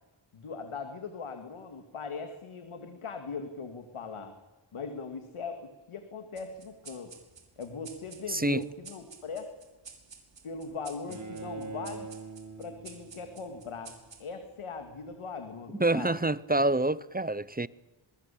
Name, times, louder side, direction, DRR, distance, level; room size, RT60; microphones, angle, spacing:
voice 1, 0.3-4.3 4.7-7.1 7.6-9.5 10.4-12.1 12.6-16.2, left 4 dB, 85° left, 2.6 m, -40 dB
sound 1, 6.4-15.2, right 5 dB, 60° right, 5.2 m, -53 dB
voice 2, 8.3-8.6 15.8-17.7, right 2 dB, 20° right, 0.8 m, -27 dB
Bowed string instrument, 11.1-14.1, right 4 dB, 35° right, 5.4 m, -43 dB
27.0 x 20.5 x 8.6 m
wide cardioid pair, 80°, 49 cm